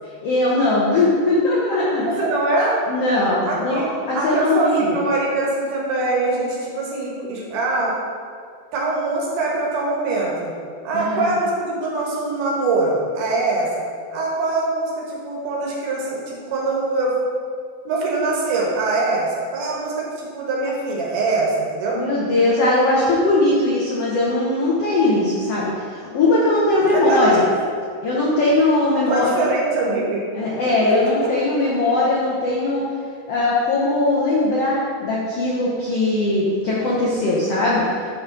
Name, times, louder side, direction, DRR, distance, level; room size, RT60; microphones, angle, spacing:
voice 1, 0.2-2.2 2.9-5.0 10.9-11.3 21.9-27.4 28.0-29.6 30.3-32.8 33.3-37.8, left 2 dB, 85° left, -6 dB, 1.3 m, -20 dB
voice 2, 2.0-2.8 3.4-3.9 4.1-8.0 8.7-10.5 10.8-13.7 14.1-17.2 17.8-22.0 26.9-27.4 29.1-30.2, right 3 dB, 70° right, -3 dB, 2.6 m, -23 dB
11.0 x 3.6 x 3.8 m, 2.1 s
omnidirectional pair, 4.1 m